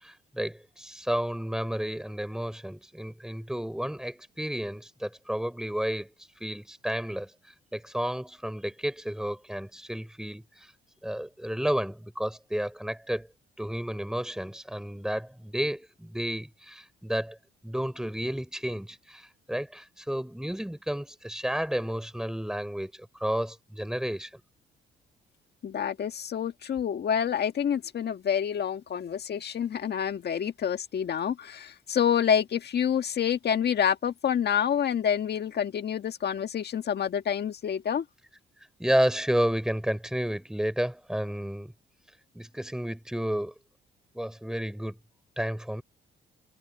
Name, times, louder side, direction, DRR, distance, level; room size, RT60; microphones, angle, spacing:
voice 1, 0.0-6.1 6.4-7.3 7.7-10.7 11.0-13.3 13.6-17.4 17.6-24.4 38.8-41.7 42.3-43.5 44.1-45.0 45.4-45.8, equal, 5° right, 3.6 m, -31 dB
voice 2, 25.6-38.0, left 8 dB, 55° left, 1.7 m, -28 dB
cardioid pair, 90°, 20 cm